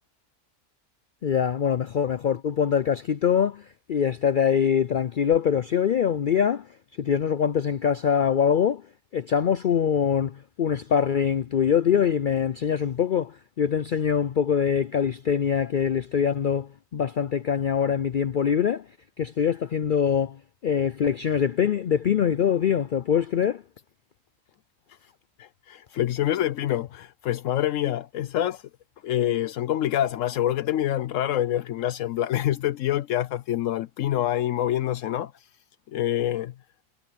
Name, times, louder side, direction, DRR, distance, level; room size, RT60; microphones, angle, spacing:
voice 1, 1.2-18.9 19.2-23.6, left 8 dB, 60° left, 0.5 m, -24 dB
voice 2, 25.4-28.6 29.0-35.3 35.9-36.5, left 12 dB, 75° left, 1.0 m, -26 dB
omnidirectional pair, 1.4 m